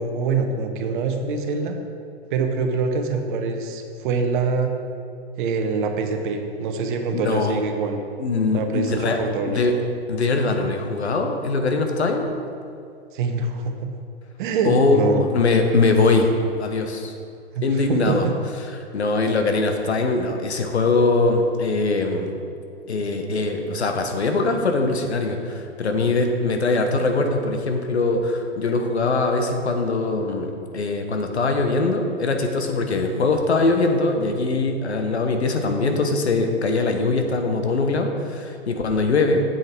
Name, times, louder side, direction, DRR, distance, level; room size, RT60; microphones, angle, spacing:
voice 1, 0.0-1.8 2.3-4.7 5.4-8.0 8.5-9.6 13.1-13.9 14.4-15.2 17.5-18.3, right 4 dB, 50° right, 5 dB, 1.1 m, -24 dB
voice 2, 7.1-7.6 8.2-9.2 9.5-9.7 10.1-12.3 14.6-16.3 16.6-17.1 17.6-18.3 18.8-22.3 22.9-39.4, left 3 dB, 80° left, 4 dB, 1.2 m, -22 dB
7.9 x 7.7 x 4.5 m, 2.5 s
figure-of-eight pair, 105°, 33 cm